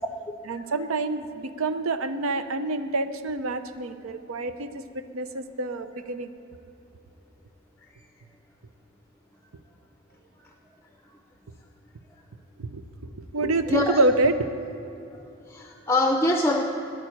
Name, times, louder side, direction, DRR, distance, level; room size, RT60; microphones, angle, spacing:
voice 1, 0.5-6.3 12.6-12.8 13.3-14.5, right 2 dB, 80° right, 11 dB, 0.7 m, -27 dB
voice 2, 13.7-14.0 15.1-15.2 15.5-16.6, left 1 dB, 10° left, 3 dB, 0.5 m, -23 dB
9.6 x 9.1 x 8.6 m, 2.9 s
head